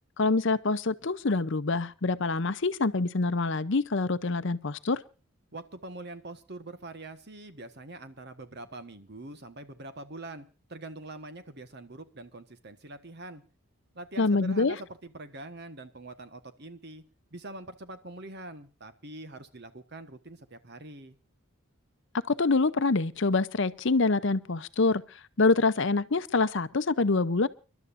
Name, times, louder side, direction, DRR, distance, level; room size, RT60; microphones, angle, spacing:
voice 1, 0.2-5.0 14.2-14.7 22.3-27.5, left 3 dB, 55° left, 0.7 m, -26 dB
voice 2, 5.5-13.4 13.9-17.0 17.3-21.2, right 2 dB, 50° right, 1.4 m, -44 dB
29.5 x 12.0 x 2.6 m
head